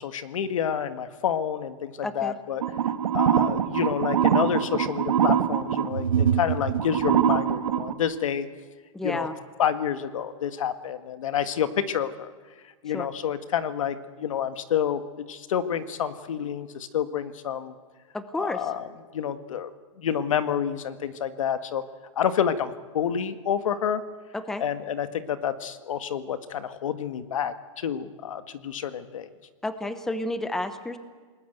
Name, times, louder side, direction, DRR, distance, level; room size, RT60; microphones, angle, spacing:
voice 1, 0.0-2.6 3.1-8.5 9.0-9.3 9.6-12.3 12.8-17.7 18.4-19.7 20.0-21.8 22.2-24.0 24.6-29.3, left 8 dB, 75° left, 11 dB, 1.7 m, -28 dB
voice 2, 2.0-2.3 8.9-9.3 12.9-13.1 18.1-18.6 24.3-24.6 29.6-31.0, left 2 dB, 5° left, 11 dB, 0.8 m, -31 dB
sound 1, 2.6-7.9, right 9 dB, 85° right, 1.6 m, -23 dB
28.5 x 20.0 x 8.1 m, 1.5 s
hypercardioid pair, 165°, 17 cm